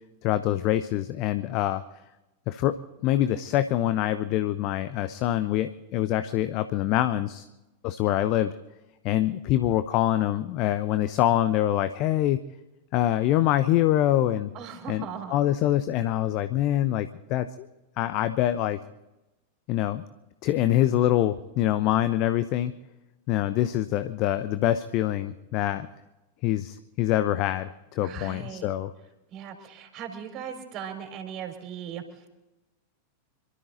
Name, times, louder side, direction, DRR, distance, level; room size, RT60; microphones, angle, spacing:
voice 1, 0.2-1.8 2.5-2.7 3.0-7.5 7.8-8.5 9.0-12.4 12.9-14.5 14.9-15.0 15.3-17.7 18.0-18.8 19.7-20.0 20.4-22.7 23.3-25.9 26.4-28.9, left 13 dB, 40° left, 12 dB, 0.7 m, -25 dB
voice 2, 14.5-15.4 28.0-28.7 29.3-32.3, right 8 dB, 35° right, 4 dB, 3.8 m, -38 dB
26.5 x 13.0 x 3.9 m, 1.0 s
figure-of-eight pair, 90°, 0 cm